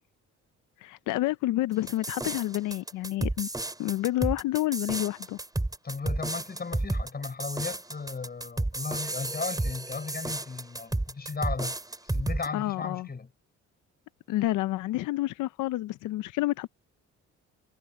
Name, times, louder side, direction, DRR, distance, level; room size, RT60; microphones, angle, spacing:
voice 1, 0.8-3.5 3.8-5.4 12.5-13.1 14.3-16.7, left 16 dB, 90° left, 0.6 m, -29 dB
sound 1, 1.9-12.5, right 2 dB, 10° right, 5.4 m, -32 dB
voice 2, 5.8-11.8 12.0-13.3, left 4 dB, 30° left, 5.6 m, -36 dB
cardioid pair, 90°, 30 cm